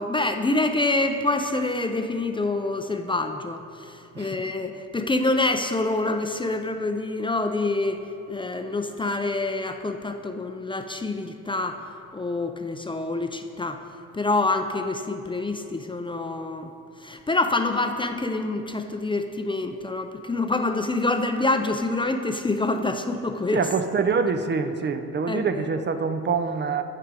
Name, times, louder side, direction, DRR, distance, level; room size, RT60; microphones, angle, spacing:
voice 1, 0.0-8.0 8.3-11.8 12.1-13.8 14.1-16.7 17.0-23.6 25.3-25.6, left 2 dB, 15° left, 6 dB, 0.5 m, -26 dB
voice 2, 23.5-26.8, right 5 dB, 35° right, 9 dB, 0.5 m, -25 dB
14.5 x 4.8 x 4.8 m, 2.6 s
cardioid pair, 90°, 30 cm